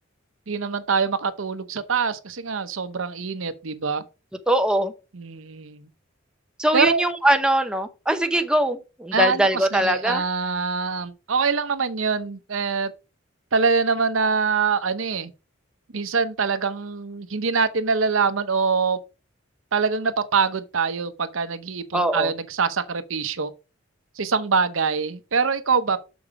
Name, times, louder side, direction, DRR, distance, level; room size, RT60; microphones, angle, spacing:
voice 1, 0.5-4.0 5.1-5.9 6.7-7.0 9.1-12.9 13.5-15.3 15.9-19.0 19.7-23.5 24.2-26.0, right 5 dB, 80° right, 0.8 m, -24 dB
voice 2, 4.5-4.9 6.6-10.2 21.9-22.3, right 1 dB, 5° right, 0.7 m, -21 dB
7.0 x 4.8 x 4.7 m
head